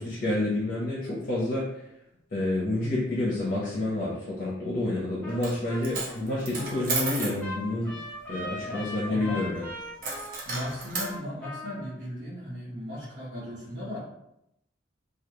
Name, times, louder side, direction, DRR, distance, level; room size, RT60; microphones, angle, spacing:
voice 1, 0.0-1.6 2.3-8.0 8.3-9.6, left 2 dB, 45° left, -7 dB, 0.6 m, -29 dB
Trumpet, 5.2-5.4 5.7-11.9, left 1 dB, 10° left, 0.8 m, -40 dB
Coin (dropping), 5.3-5.6 5.8-7.4 10.0-11.1, right 3 dB, 50° right, 0.6 m, -32 dB
voice 2, 8.4-9.5 10.4-14.0, equal, 75° right, -11 dB, 0.9 m, -37 dB
2.3 x 2.2 x 2.9 m, 0.81 s
head